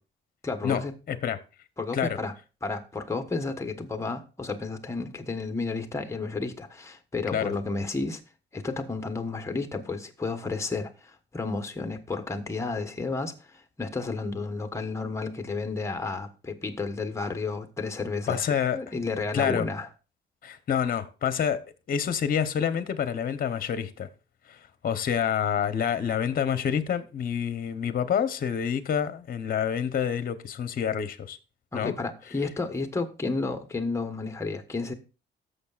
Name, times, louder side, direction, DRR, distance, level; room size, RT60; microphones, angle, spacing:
voice 1, 0.4-1.0 1.8-2.3 2.6-8.2 8.5-19.9 31.7-34.9, left 3 dB, 15° left, 1.2 m, -32 dB
voice 2, 1.1-1.4 1.9-2.2 7.3-7.5 18.3-18.8 19.3-19.7 20.4-24.1 24.5-24.6 24.8-31.4 31.7-31.9, left 8 dB, 45° left, 0.9 m, -27 dB
14.5 x 6.7 x 2.4 m
cardioid pair, 90°, 20 cm